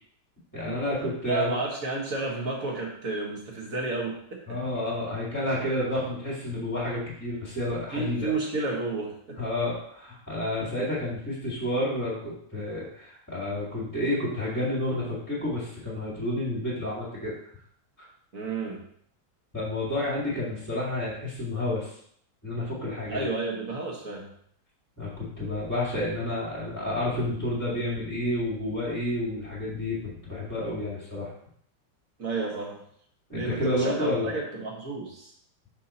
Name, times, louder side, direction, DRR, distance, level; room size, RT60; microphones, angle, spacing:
voice 1, 0.5-1.6 4.5-8.3 9.4-17.3 19.5-21.9 22.4-23.2 25.0-31.3 33.3-34.3, left 1 dB, 10° left, -9 dB, 2.0 m, -30 dB
voice 2, 1.3-4.4 7.9-9.4 18.3-18.8 23.1-24.3 32.2-32.8 33.3-35.3, right 3 dB, 45° right, -1 dB, 1.9 m, -31 dB
6.1 x 5.8 x 4.3 m, 0.66 s
omnidirectional pair, 2.2 m